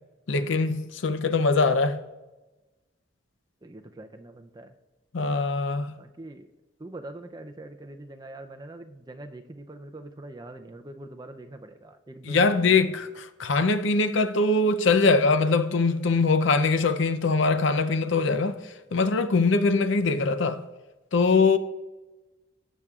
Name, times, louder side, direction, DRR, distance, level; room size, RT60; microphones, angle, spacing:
voice 1, 0.3-2.0 5.1-5.9 12.2-18.6 18.9-20.6 21.1-21.6, left 3 dB, 70° left, 0.6 m, -22 dB
voice 2, 3.6-4.7 6.0-6.5 6.8-12.8, right 1 dB, 20° right, 0.5 m, -43 dB
18.5 x 7.3 x 2.4 m
head